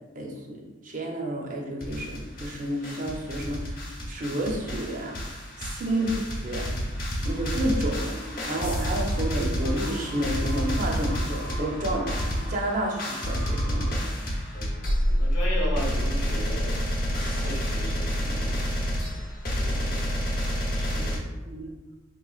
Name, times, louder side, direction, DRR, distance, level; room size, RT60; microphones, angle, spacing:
voice 1, 0.1-3.8 4.1-6.1 6.4-6.7 7.2-12.1 12.5-14.1 21.0-21.1 21.5-21.7, right 1 dB, 40° right, 0 dB, 0.6 m, -30 dB
sound 1, 1.8-2.6 2.8-21.2, equal, 45° left, 0.8 m, -29 dB
sound 2, 7.1-14.0, equal, 90° right, 1.1 m, -42 dB
voice 2, 14.5-21.3 21.6-21.7, equal, 90° left, -2 dB, 1.0 m, -38 dB
4.2 x 3.1 x 2.3 m, 1.2 s
head